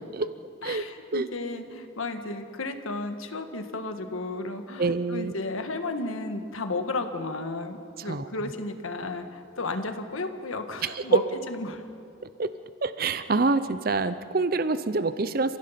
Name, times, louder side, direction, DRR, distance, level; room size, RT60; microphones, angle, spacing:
voice 1, 0.6-11.8, left 2 dB, 90° left, 7 dB, 1.6 m, -33 dB
voice 2, 4.8-5.3 8.1-8.2 10.8-11.0 12.4-12.5 12.8-15.6, right 3 dB, 45° right, 12 dB, 0.6 m, -26 dB
30.0 x 16.0 x 5.8 m, 2.5 s
head